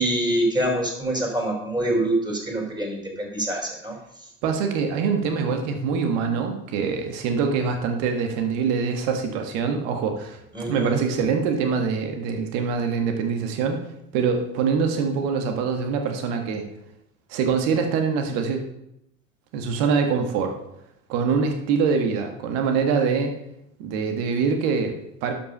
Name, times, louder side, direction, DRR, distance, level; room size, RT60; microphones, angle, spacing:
voice 1, 0.0-4.0 10.5-11.0, right 1 dB, 10° right, -1 dB, 5.3 m, -25 dB
voice 2, 4.4-10.4 10.7-13.8 14.1-16.6 17.3-18.6 19.5-20.5 21.1-23.3 23.8-25.3, right 5 dB, 60° right, 5 dB, 1.8 m, -24 dB
11.5 x 6.1 x 6.7 m, 0.82 s
figure-of-eight pair, 65°, 40 cm